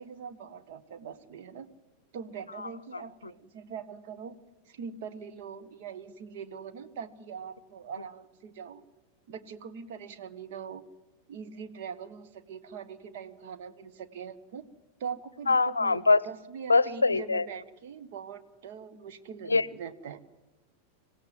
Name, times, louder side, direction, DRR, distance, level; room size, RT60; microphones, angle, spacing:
voice 1, 0.0-1.7 2.1-4.3 4.7-8.8 9.3-10.8 11.3-14.6 15.0-20.2, right 7 dB, 55° right, 10 dB, 1.4 m, -42 dB
voice 2, 15.5-16.2 16.7-17.4 19.5-19.6, left 3 dB, 80° left, 22 dB, 0.6 m, -23 dB
26.5 x 16.0 x 7.8 m, 1.2 s
figure-of-eight pair, 90°, 0 cm